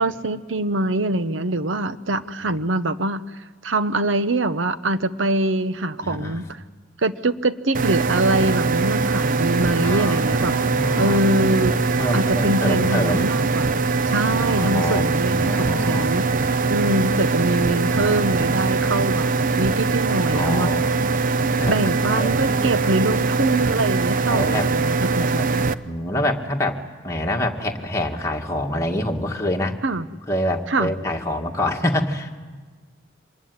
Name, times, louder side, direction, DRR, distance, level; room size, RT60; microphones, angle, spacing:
voice 1, 0.0-3.2 3.6-6.6 7.0-10.5 10.9-11.8 12.1-13.7 14.1-16.2 16.7-19.3 19.5-20.7 21.7-25.7 29.8-30.0 30.7-30.9, right 2 dB, 75° right, 12 dB, 1.0 m, -23 dB
voice 2, 6.0-6.4 9.8-11.2 11.6-13.3 14.5-16.1 17.9-18.2 20.3-20.9 21.6-22.7 24.3-24.7 25.4-25.5 25.9-26.8 27.0-29.8 30.3-32.3, left 1 dB, 15° left, 0 dB, 2.0 m, -26 dB
sound 1, 7.7-25.7, right 4 dB, 45° right, 0.7 m, -22 dB
25.0 x 20.5 x 9.6 m, 1.4 s
head